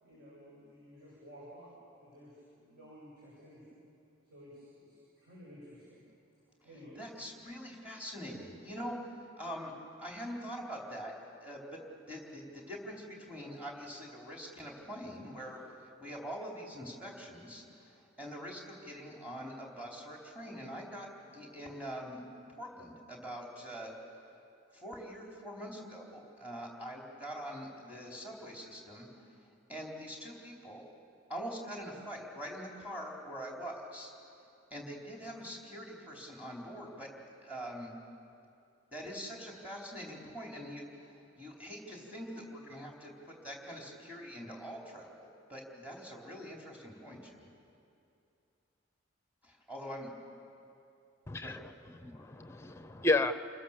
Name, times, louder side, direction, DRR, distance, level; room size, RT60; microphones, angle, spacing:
voice 1, 0.0-1.7 2.0-3.8 4.2-6.0 6.6-7.2, equal, 55° right, -7 dB, 7.6 m, -53 dB
voice 2, 7.0-9.0 9.4-9.7 10.0-11.1 11.4-11.8 12.1-15.6 16.0-22.2 22.6-23.9 24.7-29.1 29.7-30.9 31.3-34.1 34.7-37.1 37.4-37.9 38.9-47.5 49.4-50.1 51.4-51.6, equal, 5° right, -1 dB, 3.8 m, -44 dB
voice 3, 51.3-53.3, left 2 dB, 15° left, 11 dB, 0.7 m, -32 dB
28.5 x 20.5 x 7.4 m, 2.6 s
head